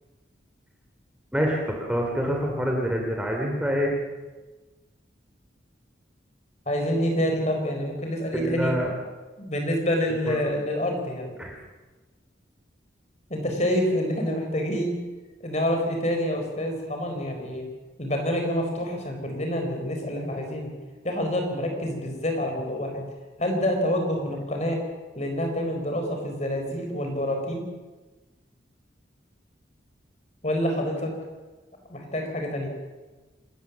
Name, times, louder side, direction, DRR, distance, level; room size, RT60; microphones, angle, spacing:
voice 1, 1.3-3.9 8.3-8.9 10.3-10.4 11.4-11.5, equal, 5° right, 0 dB, 2.9 m, -26 dB
voice 2, 6.7-8.7 9.4-11.4 13.3-15.0 15.4-17.6 18.0-20.7 21.0-23.0 23.4-24.8 25.2-27.6 30.4-31.1 31.9-32.7, equal, 35° left, 3 dB, 4.4 m, -27 dB
27.0 x 14.0 x 7.4 m, 1.2 s
head